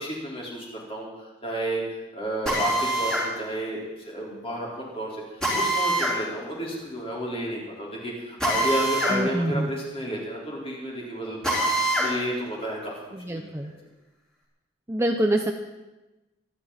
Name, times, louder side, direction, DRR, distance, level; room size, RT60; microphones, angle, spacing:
voice 1, 0.0-1.8 2.1-5.2 5.5-13.7, right 1 dB, 30° left, -4 dB, 4.6 m, -32 dB
Drill, 2.5-3.3 5.4-6.2 8.4-9.2 9.5-9.6 11.4-12.1, right 1 dB, 5° left, 4.5 m, -24 dB
voice 2, 9.1-9.7 13.1-13.7 14.9-15.5, right 1 dB, 15° right, 4 dB, 0.7 m, -25 dB
25.5 x 11.5 x 4.3 m, 1.1 s
head